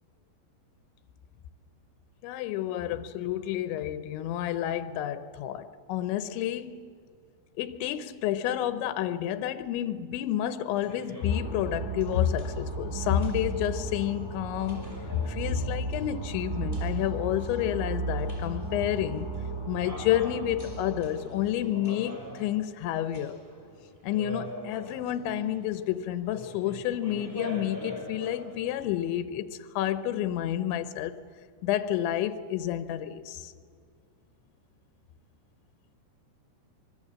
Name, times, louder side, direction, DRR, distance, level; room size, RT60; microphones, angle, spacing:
voice 1, 2.2-6.8 7.6-19.3 19.7-23.4 24.0-31.2 31.6-33.5, left 11 dB, 90° left, 3.1 m, -30 dB
sound 1, 10.7-29.0, left 1 dB, 5° left, 4.5 m, -45 dB
sound 2, 11.3-21.5, right 2 dB, 10° right, 1.4 m, -35 dB
24.5 x 23.5 x 7.5 m
omnidirectional pair, 5.1 m